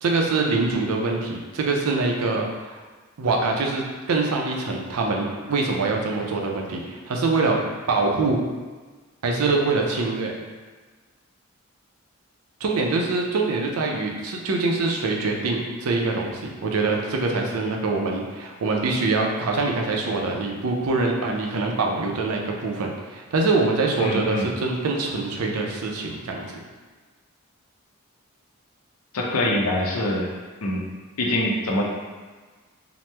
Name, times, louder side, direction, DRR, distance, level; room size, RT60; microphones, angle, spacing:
voice 1, 0.0-2.8 3.2-7.6 7.9-8.4 9.2-10.3 12.6-26.6, right 3 dB, 85° right, 0 dB, 0.5 m, -24 dB
voice 2, 24.0-24.5 29.1-30.3 30.6-30.9 31.2-31.8, left 1 dB, 85° left, -1 dB, 0.6 m, -24 dB
2.9 x 2.1 x 3.2 m, 1.4 s
head